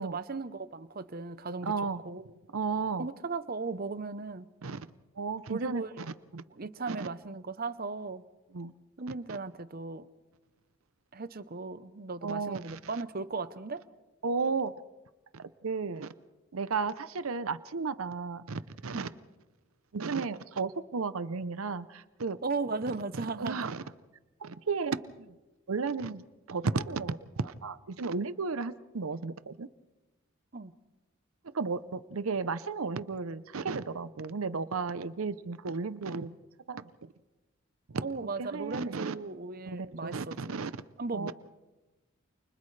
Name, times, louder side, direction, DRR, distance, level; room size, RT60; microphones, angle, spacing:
voice 1, 0.0-2.2 3.0-4.5 5.5-5.9 6.5-8.2 9.0-10.1 11.1-13.8 18.9-19.1 22.4-23.7 30.5-30.7 38.0-40.6 41.0-41.3, right 3 dB, 45° right, 13 dB, 0.8 m, -37 dB
voice 2, 1.6-2.0 2.5-3.1 4.6-4.9 5.2-6.4 6.9-7.1 8.5-8.7 9.3-9.4 12.2-12.8 14.2-14.7 15.3-16.1 16.5-19.1 19.9-22.4 23.4-23.8 24.4-25.3 25.7-29.7 31.5-36.4 36.7-36.9 37.9-38.0 38.4-39.1 39.7-40.7 41.1-41.3, right 4 dB, 80° right, 14 dB, 0.7 m, -34 dB
29.0 x 29.0 x 3.3 m, 1.1 s
head